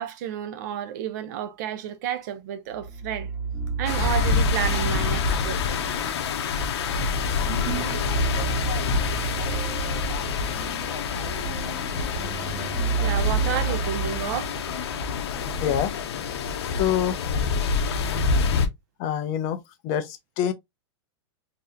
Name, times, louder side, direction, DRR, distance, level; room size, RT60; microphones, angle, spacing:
voice 1, 0.0-3.3 3.8-6.0 13.0-14.6, right 9 dB, 40° right, 0.4 m, -31 dB
sound 1, 2.7-14.8, right 5 dB, 5° left, 1.4 m, -31 dB
sound 2, 3.9-18.7, left 5 dB, 70° left, 0.7 m, -27 dB
sound 3, 7.4-13.9, right 6 dB, 75° right, 1.0 m, -41 dB
voice 2, 15.6-15.9 16.6-17.2 19.0-20.5, left 9 dB, 30° left, 0.5 m, -26 dB
4.0 x 2.7 x 2.4 m
supercardioid pair, 165°, 14 cm